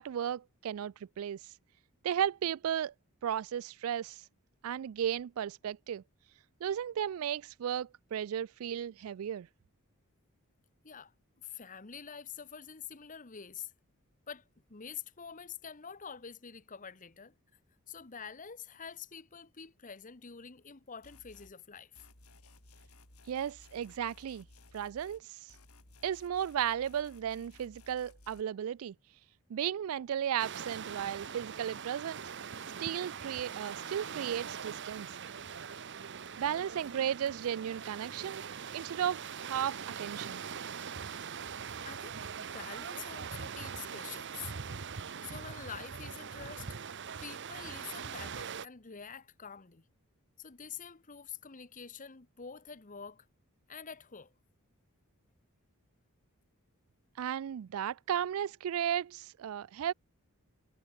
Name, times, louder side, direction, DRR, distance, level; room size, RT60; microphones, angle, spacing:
voice 1, 0.0-1.4 2.0-2.9 3.2-4.2 4.6-6.0 6.6-9.5 23.3-24.5 24.7-25.4 26.0-28.9 29.5-32.2 32.8-35.1 36.4-38.4 38.7-40.4 57.2-59.9, right 9 dB, 70° right, 0.3 m, -35 dB
voice 2, 11.4-13.7 14.3-14.4 14.7-17.3 17.9-22.1 35.4-35.5 41.8-44.5 44.8-46.8 47.2-49.8 50.4-53.3 53.7-54.3, left 7 dB, 35° left, 1.1 m, -47 dB
sound 1, 21.0-21.5 21.9-25.2 25.5-28.4, left 2 dB, 85° left, 5.5 m, -58 dB
sound 2, 30.4-48.7, right 6 dB, 55° right, 0.9 m, -42 dB
head